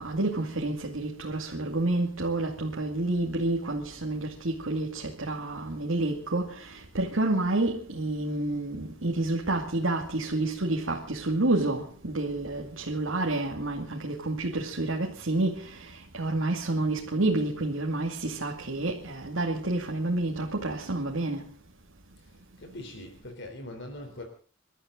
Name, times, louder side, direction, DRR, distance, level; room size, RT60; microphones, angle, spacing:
voice 1, 0.0-15.8 16.1-21.4, right 2 dB, 80° right, 2.5 m, -29 dB
voice 2, 22.2-24.2, left 1 dB, 65° left, 3.7 m, -42 dB
29.0 x 13.0 x 3.9 m
head